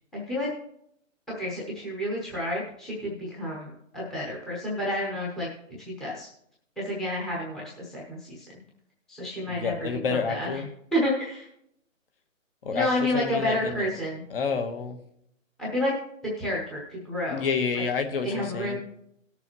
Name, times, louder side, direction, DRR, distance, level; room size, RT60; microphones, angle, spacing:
voice 1, 0.1-0.5 1.4-5.5 5.9-6.3 6.8-8.6 9.1-9.7 10.1-10.6 10.9-11.5 12.7-14.2 15.6-15.9 16.4-17.4 18.2-18.8, left 1 dB, ahead, -5 dB, 0.9 m, -30 dB
voice 2, 9.5-10.7 12.6-12.9 13.1-13.8 14.3-15.0 17.3-18.8, left 5 dB, 45° left, 6 dB, 1.3 m, -29 dB
18.0 x 6.9 x 3.0 m, 0.75 s
hypercardioid pair, 160°, 40 cm